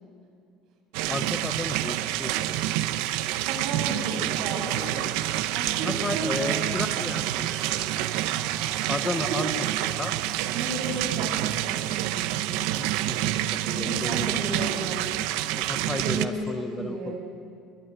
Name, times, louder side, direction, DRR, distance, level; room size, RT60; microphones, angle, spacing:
sound 1, 0.9-16.2, right 14 dB, 70° right, 1.0 m, -28 dB
voice 1, 1.1-2.6 5.8-8.1 8.9-9.5 10.0-10.1 12.6-14.9 15.6-17.2, left 3 dB, 15° left, 9 dB, 0.8 m, -34 dB
sound 2, 3.2-12.1, right 5 dB, 25° right, 1.7 m, -46 dB
voice 2, 3.4-5.1 5.5-6.7 9.2-9.6 10.5-12.4 13.6-15.2 16.0-17.2, right 3 dB, 50° right, 1 dB, 6.6 m, -33 dB
23.0 x 22.0 x 9.4 m, 2.4 s
cardioid pair, 170°, 0 cm